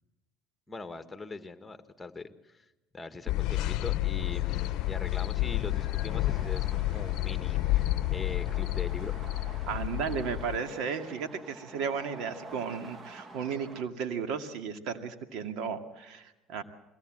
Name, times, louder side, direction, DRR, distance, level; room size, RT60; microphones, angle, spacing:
voice 1, 0.7-2.6 2.9-9.1, left 3 dB, 15° left, 9 dB, 1.6 m, -42 dB
sound 1, 3.3-10.6, left 16 dB, 70° left, 0.7 m, -30 dB
sound 2, 4.2-13.8, right 2 dB, 30° right, 1.9 m, -49 dB
voice 2, 9.7-16.6, right 6 dB, 70° right, 7 dB, 2.1 m, -34 dB
23.0 x 17.0 x 7.7 m, 1.0 s
supercardioid pair, 90°, 0 cm